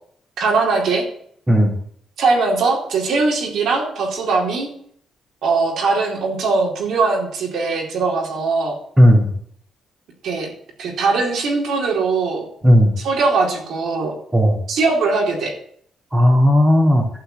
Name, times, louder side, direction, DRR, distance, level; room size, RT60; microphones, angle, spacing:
voice 1, 0.4-1.0 2.2-4.7 5.4-8.8 10.2-10.5 10.8-12.4 13.0-14.1 14.7-15.5, right 4 dB, 70° right, -1 dB, 4.3 m, -20 dB
voice 2, 9.0-9.3 12.6-12.9 14.3-14.6 16.1-17.1, equal, 15° right, 0 dB, 3.7 m, -13 dB
12.0 x 5.9 x 9.3 m, 0.64 s
cardioid pair, 90°, 0 cm